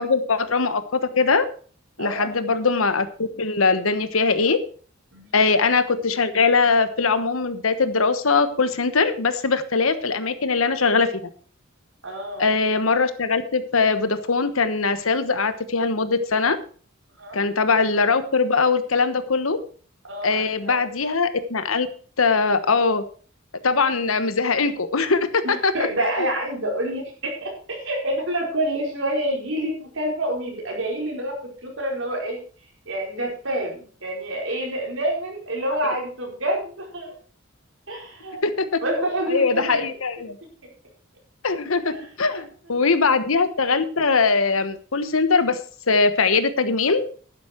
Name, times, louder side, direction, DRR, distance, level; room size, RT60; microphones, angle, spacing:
voice 1, 0.0-1.5 2.0-4.6 5.3-11.1 12.4-16.6 17.3-19.6 20.2-21.9 22.2-23.0 23.6-25.7 26.2-26.3 38.4-38.6 39.0-40.4 41.4-45.6 45.9-47.0, left 4 dB, 85° left, 11 dB, 1.2 m, -21 dB
voice 2, 2.0-2.3 5.1-5.3 12.0-12.5 17.2-17.4 20.1-20.8 25.4-32.4 32.8-37.1 37.9-38.4 38.8-39.9 40.6-40.7 41.9-42.8, right 1 dB, 70° right, 0 dB, 4.8 m, -28 dB
11.5 x 10.5 x 4.5 m, 0.43 s
head